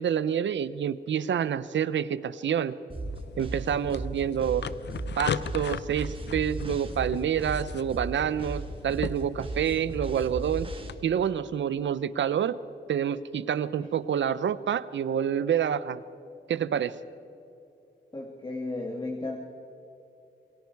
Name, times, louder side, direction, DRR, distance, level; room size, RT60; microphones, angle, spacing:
voice 1, 0.0-2.8 3.4-4.6 5.2-10.7 11.0-12.6 12.9-16.0 16.5-17.0, right 8 dB, 85° right, 15 dB, 0.8 m, -28 dB
sound 1, 2.9-10.9, right 2 dB, 30° right, 2.4 m, -36 dB
sound 2, 3.0-10.9, left 8 dB, 70° left, 0.7 m, -39 dB
voice 2, 18.1-19.4, left 2 dB, 25° left, 2 dB, 2.1 m, -34 dB
27.5 x 23.0 x 4.7 m, 2.9 s
wide cardioid pair, 125°, 19 cm